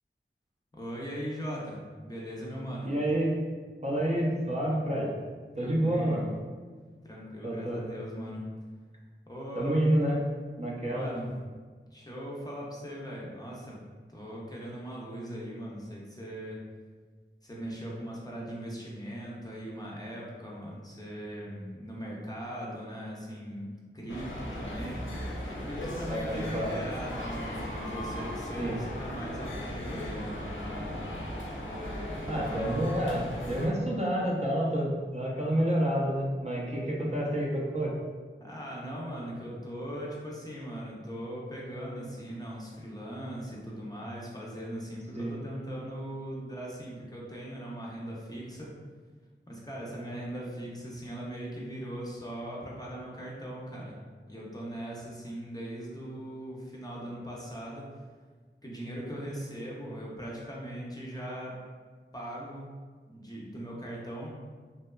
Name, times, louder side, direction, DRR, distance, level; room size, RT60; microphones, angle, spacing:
voice 1, 0.7-2.9 5.6-6.3 7.0-8.4 9.3-9.9 10.9-11.3 11.9-13.8 14.1-16.6 17.4-31.1 32.2-32.7 38.4-48.7 49.5-54.0 54.3-57.9 58.6-61.6 62.1-62.7 63.1-64.3, equal, 20° left, -5 dB, 0.5 m, -39 dB
voice 2, 2.8-3.3 3.8-5.1 5.6-6.2 7.4-7.8 9.6-10.2 10.6-11.1 26.1-26.7 28.6-28.8 32.3-37.9 45.2-45.3, right 1 dB, 35° right, -4 dB, 0.5 m, -28 dB
sound 1, 24.1-33.7, equal, 75° left, 0.5 m, -37 dB
2.8 x 2.2 x 2.2 m, 1.5 s
wide cardioid pair, 50°, 21 cm